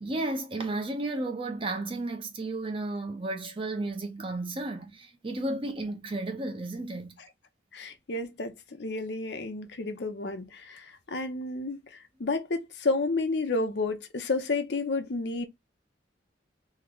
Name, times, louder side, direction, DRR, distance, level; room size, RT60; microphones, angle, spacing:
voice 1, 0.0-7.2, right 2 dB, 30° right, 0.6 m, -33 dB
voice 2, 7.7-15.5, left 3 dB, 65° left, 0.6 m, -31 dB
3.2 x 2.1 x 3.7 m
head